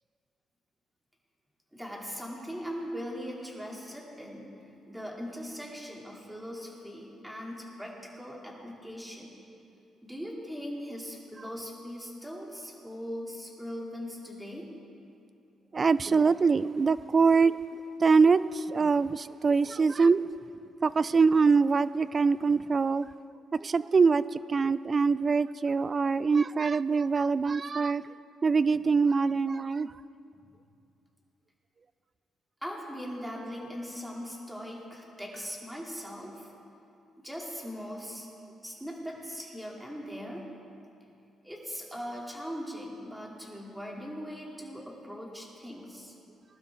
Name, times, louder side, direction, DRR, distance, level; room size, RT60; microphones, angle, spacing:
voice 1, 1.7-4.5 4.9-9.3 10.0-14.7 32.6-36.5 37.2-38.3 38.6-40.5 41.4-46.1, equal, 5° right, -2 dB, 2.8 m, -40 dB
voice 2, 15.7-20.2 20.8-23.1 23.6-28.0 28.4-29.9, right 4 dB, 35° right, 17 dB, 0.4 m, -24 dB
19.5 x 12.0 x 3.6 m, 2.6 s
cardioid pair, 90°, 0 cm